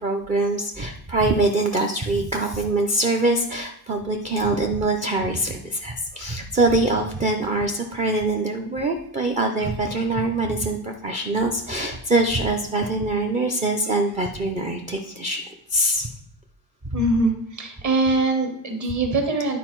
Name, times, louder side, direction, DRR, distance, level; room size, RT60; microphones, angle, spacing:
voice 1, 0.0-15.4 15.7-16.1 16.8-17.0, right 2 dB, 15° right, 2 dB, 0.4 m, -23 dB
voice 2, 16.9-19.6, right 2 dB, 35° right, 3 dB, 1.5 m, -22 dB
11.0 x 4.4 x 4.5 m, 0.73 s
cardioid pair, 160°, 48 cm